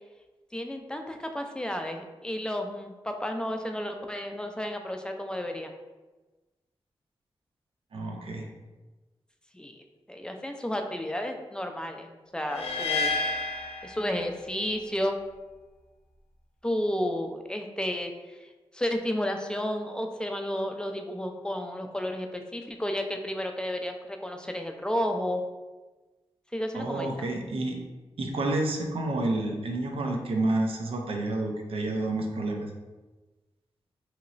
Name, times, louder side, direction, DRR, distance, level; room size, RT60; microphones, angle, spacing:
voice 1, 0.5-5.7 9.5-13.1 13.8-15.2 16.6-18.5 18.7-25.4 26.5-27.3, left 1 dB, 10° left, 4 dB, 0.4 m, -32 dB
voice 2, 7.9-8.5 26.7-27.8 28.2-32.7, right 2 dB, 70° right, 3 dB, 0.5 m, -29 dB
sound 1, 12.5-14.7, left 3 dB, 85° left, 0.4 m, -30 dB
2.9 x 2.9 x 2.5 m, 1.2 s
cardioid pair, 45°, 10 cm